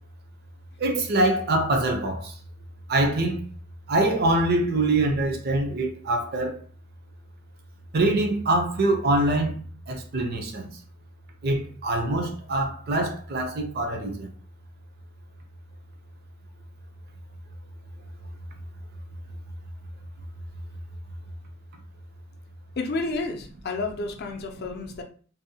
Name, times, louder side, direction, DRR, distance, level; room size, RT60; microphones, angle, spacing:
voice 1, 0.8-2.3 2.9-3.4 3.9-6.6 7.9-10.7 11.4-14.3, right 2 dB, 50° right, 0.5 m, -24 dB
voice 2, 22.8-25.0, left 3 dB, 50° left, 0.4 m, -30 dB
2.6 x 2.1 x 2.7 m
head